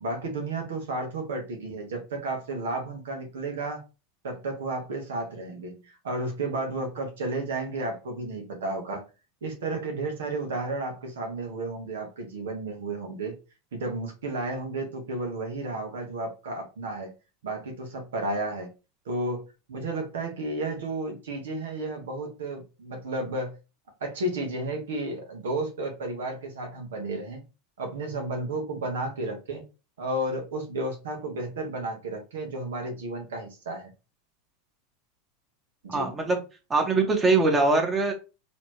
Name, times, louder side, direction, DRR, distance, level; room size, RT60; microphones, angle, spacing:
voice 1, 0.0-3.8 4.2-9.0 9.4-13.4 13.7-17.1 17.4-18.7 19.0-23.5 24.0-27.4 27.8-29.6 30.0-33.9 35.8-36.1, right 2 dB, 80° right, 1.3 m, -32 dB
voice 2, 35.9-36.4 36.7-38.1, right 3 dB, 20° right, 1.6 m, -22 dB
4.2 x 3.0 x 3.0 m
hypercardioid pair, 95°, 0 cm